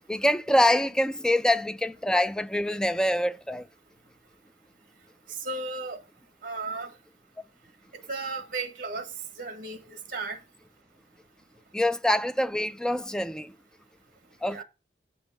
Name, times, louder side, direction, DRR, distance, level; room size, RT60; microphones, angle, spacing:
voice 1, 0.1-3.6 11.7-13.5 14.4-14.6, left 1 dB, 5° left, 0.3 m, -25 dB
voice 2, 5.4-6.0 6.4-6.9 7.9-9.1 9.4-10.4 14.5-14.6, right 3 dB, 50° right, 1.3 m, -35 dB
7.9 x 5.3 x 4.8 m
head